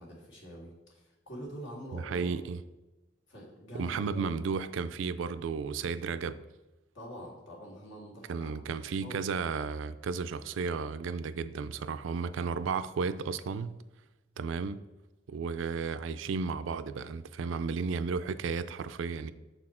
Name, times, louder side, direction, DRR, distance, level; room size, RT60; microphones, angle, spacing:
voice 1, 0.0-2.4 3.3-4.2 6.9-8.6 8.9-9.2, equal, 80° left, 1.9 m, -45 dB
voice 2, 1.9-2.6 3.7-6.4 8.3-13.8 14.4-14.8 15.3-19.3, right 5 dB, 80° right, 0.4 m, -33 dB
7.0 x 4.2 x 4.3 m
head